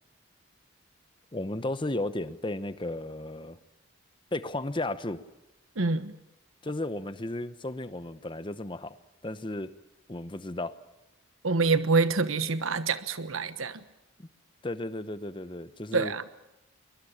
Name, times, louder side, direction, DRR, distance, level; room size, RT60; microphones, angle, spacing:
voice 1, 1.3-3.6 4.3-5.2 6.6-9.0 9.2-9.7 10.1-10.8 14.2-14.3 14.6-16.1, left 2 dB, 25° left, 0.9 m, -34 dB
voice 2, 5.8-6.1 11.4-13.8 15.9-16.2, right 4 dB, 80° right, 1.2 m, -26 dB
22.5 x 21.0 x 8.6 m
head